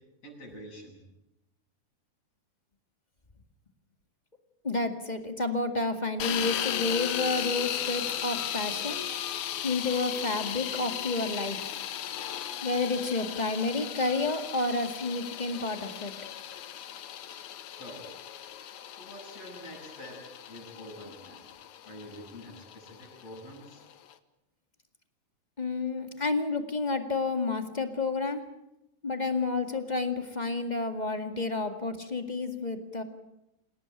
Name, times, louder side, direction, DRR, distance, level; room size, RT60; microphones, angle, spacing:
voice 1, 0.2-1.0 17.8-18.1 19.0-20.1 20.5-21.5 21.9-23.8, equal, 50° left, -1 dB, 9.0 m, -46 dB
voice 2, 4.6-9.0 9.6-11.7 12.6-16.1 25.6-28.4 29.0-33.0, left 3 dB, 15° left, 6 dB, 1.6 m, -30 dB
sound 1, 6.2-24.1, left 10 dB, 70° left, 2.5 m, -36 dB
28.0 x 17.5 x 9.1 m, 0.90 s
omnidirectional pair, 3.5 m